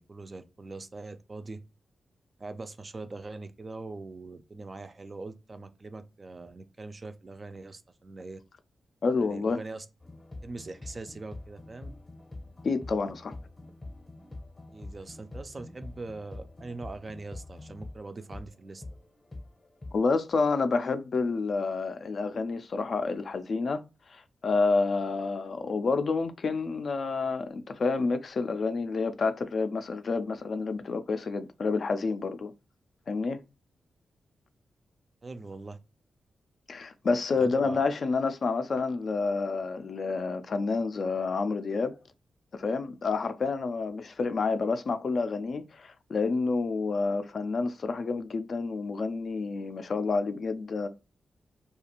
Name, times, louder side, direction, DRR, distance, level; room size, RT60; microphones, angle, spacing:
voice 1, 0.0-1.6 2.4-8.4 9.2-9.9 10.4-11.9 14.7-18.8 35.2-35.8 37.3-37.8, right 3 dB, 30° right, 0.3 m, -42 dB
voice 2, 9.0-9.6 12.6-13.4 19.9-32.5 33.1-33.4 36.7-42.0 42.5-50.9, left 4 dB, 55° left, 0.3 m, -29 dB
sound 1, 10.0-20.2, left 2 dB, 25° left, 0.6 m, -45 dB
2.5 x 2.3 x 2.9 m
wide cardioid pair, 110°, 0 cm